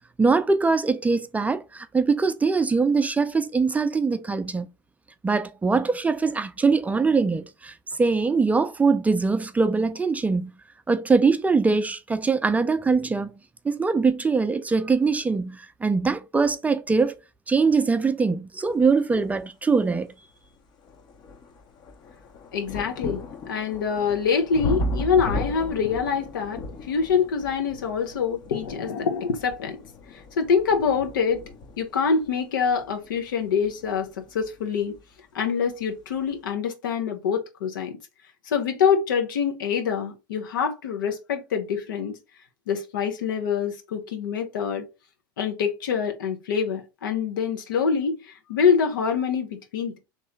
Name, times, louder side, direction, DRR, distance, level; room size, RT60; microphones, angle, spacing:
voice 1, 0.2-4.7 5.2-10.5 10.9-13.3 13.6-17.2 17.5-20.1, right 4 dB, 15° right, 0.5 m, -22 dB
sound 1, 19.8-19.9 20.4-35.1 36.0-36.1, left 2 dB, 45° left, 0.9 m, -35 dB
voice 2, 22.5-23.2 23.5-29.8 30.1-31.4 31.8-34.9 35.3-38.0 38.5-42.1 42.7-44.8 45.4-50.0, left 6 dB, 75° left, 0.9 m, -25 dB
3.2 x 2.9 x 4.4 m
hypercardioid pair, 80°, 11 cm